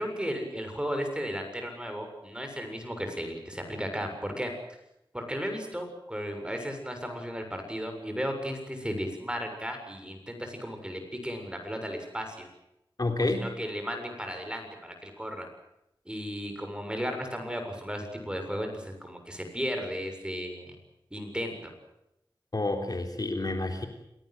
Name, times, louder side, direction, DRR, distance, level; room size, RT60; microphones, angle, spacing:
voice 1, 0.0-4.5 5.1-12.5 13.2-15.5 16.1-20.8 21.1-21.7, equal, 10° right, 5 dB, 7.3 m, -35 dB
voice 2, 13.0-13.5 22.5-23.9, left 2 dB, 45° left, 4 dB, 3.6 m, -29 dB
28.0 x 19.0 x 8.0 m, 0.85 s
wide cardioid pair, 55°, 9 cm